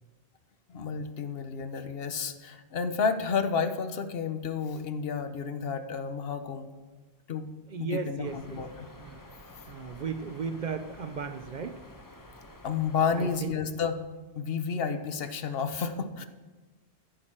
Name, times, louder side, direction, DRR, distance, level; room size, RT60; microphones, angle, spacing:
voice 1, 0.7-6.7 7.3-7.5 7.8-8.9 12.6-14.0 14.3-16.3, left 5 dB, 65° left, 9 dB, 1.0 m, -31 dB
voice 2, 7.7-8.6 9.0-9.2 9.7-11.8 13.1-13.5, right 5 dB, 55° right, 9 dB, 0.6 m, -35 dB
sound 1, 8.2-13.4, left 1 dB, 20° left, 0.9 m, -50 dB
10.5 x 9.9 x 4.4 m, 1.2 s
omnidirectional pair, 1.1 m